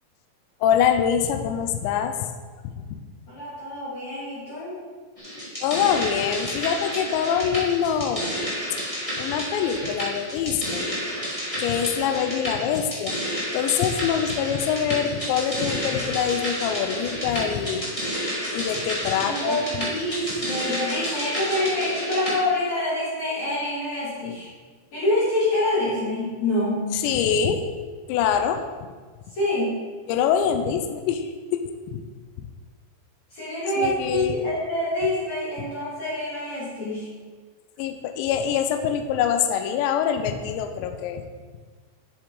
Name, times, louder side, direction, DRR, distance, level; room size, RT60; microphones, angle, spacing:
voice 1, 0.6-2.3 2.8-2.9 5.6-8.3 9.2-10.9 11.6-13.2 13.5-17.8 18.5-19.6 26.9-27.7 28.1-28.6 30.1-32.0 32.4-32.5 33.8-34.3 37.8-41.2, left 8 dB, 80° left, 7 dB, 2.8 m, -24 dB
voice 2, 3.3-4.8 19.2-24.5 24.9-26.9 29.3-29.8 33.3-37.1, left 1 dB, 40° left, -10 dB, 3.5 m, -26 dB
sound 1, 5.2-22.4, equal, 65° left, 0.3 m, -30 dB
9.6 x 7.6 x 4.9 m, 1.5 s
omnidirectional pair, 5.3 m